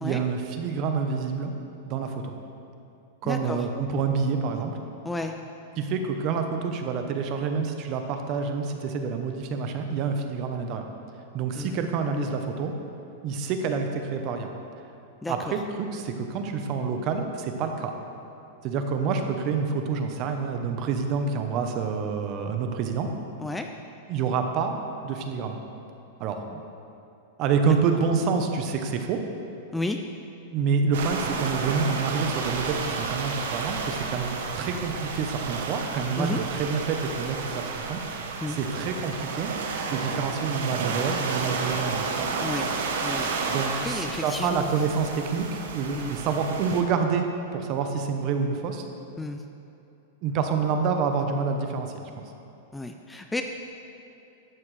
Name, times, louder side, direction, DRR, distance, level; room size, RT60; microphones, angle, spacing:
voice 1, 0.0-1.5 1.8-2.3 3.2-4.7 5.8-10.9 11.3-12.7 13.2-14.5 15.3-17.9 18.6-23.1 24.1-24.7 25.0-25.6 26.2-26.4 27.4-29.2 30.5-38.0 38.5-39.5 39.9-42.1 43.5-47.3 47.5-48.9 50.2-51.9, right 5 dB, 40° right, 5 dB, 0.9 m, -27 dB
voice 2, 3.2-3.6 5.0-5.3 11.5-11.8 15.2-15.5 23.4-23.7 26.5-26.6 29.7-30.0 36.1-36.4 38.4-38.6 42.4-42.7 43.0-43.3 43.8-44.7 45.9-46.1 49.2-49.4 52.7-53.4, left 2 dB, 5° left, 5 dB, 0.4 m, -32 dB
sound 1, 30.9-46.8, right 4 dB, 75° right, 1.1 m, -31 dB
12.0 x 8.4 x 3.3 m, 2.7 s
supercardioid pair, 145°, 0 cm